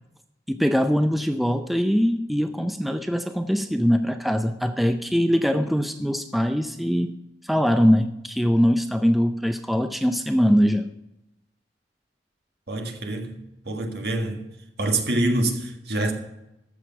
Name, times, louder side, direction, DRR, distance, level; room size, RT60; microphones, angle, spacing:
voice 1, 0.5-7.1 7.4-10.9, equal, ahead, 0.4 m, -22 dB
voice 2, 12.7-13.4 13.7-14.4 14.8-16.1, right 2 dB, 60° right, 1.8 m, -25 dB
14.0 x 6.4 x 5.8 m
head